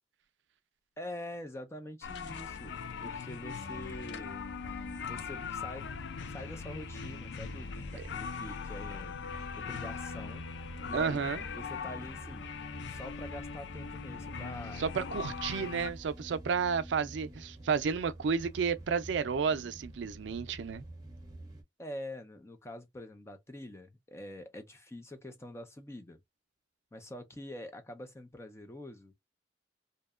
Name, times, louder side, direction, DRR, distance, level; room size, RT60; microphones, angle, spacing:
voice 1, 1.0-4.5 5.0-5.9 6.2-9.1 9.6-10.4 10.9-11.2 11.5-12.5 12.9-14.8 21.8-26.2 26.9-29.1, left 1 dB, 15° left, 0.5 m, -45 dB
sound 1, 2.0-15.9, left 5 dB, 80° left, 0.4 m, -41 dB
sound 2, 3.6-21.6, right 1 dB, 20° right, 0.7 m, -49 dB
voice 2, 10.9-11.4 14.8-20.8, right 6 dB, 80° right, 0.4 m, -31 dB
2.7 x 2.2 x 2.3 m
head